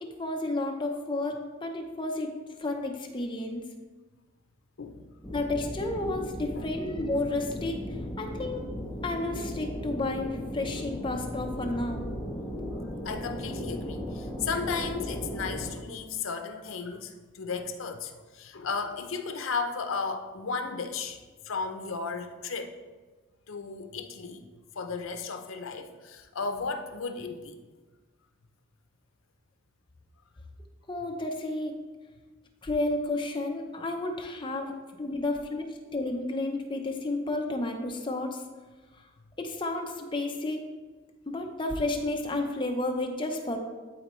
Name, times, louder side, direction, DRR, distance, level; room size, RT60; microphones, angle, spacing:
voice 1, 0.0-2.3 2.6-3.7 5.3-7.8 8.2-8.7 9.0-12.1 30.9-31.7 32.6-35.6 35.9-38.4 39.4-40.6 41.3-43.6, left 2 dB, 25° left, 2 dB, 0.7 m, -31 dB
sound 1, 5.2-15.7, equal, 5° left, 1.0 m, -36 dB
voice 2, 13.0-21.2 21.4-22.7 23.5-24.5 24.8-27.6, left 4 dB, 80° left, 7 dB, 0.6 m, -34 dB
11.5 x 4.2 x 3.1 m, 1.3 s
head